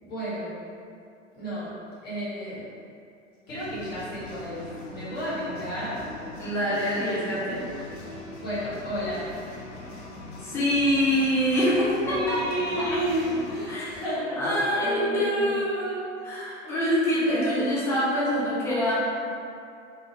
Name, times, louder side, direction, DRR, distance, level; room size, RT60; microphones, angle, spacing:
voice 1, 0.0-0.5 1.3-1.7 2.0-2.6 3.5-6.1 8.4-9.5 12.0-15.6 16.6-16.9 17.3-17.7, equal, 25° left, -10 dB, 1.2 m, -32 dB
sound 1, 3.5-13.7, left 2 dB, 55° left, 0.7 m, -41 dB
voice 2, 6.4-7.7 10.4-12.4 12.8-12.9 13.7-13.9 14.4-18.9, equal, 5° left, -8 dB, 0.4 m, -25 dB
2.8 x 2.3 x 2.9 m, 2.4 s
figure-of-eight pair, 90°, 39 cm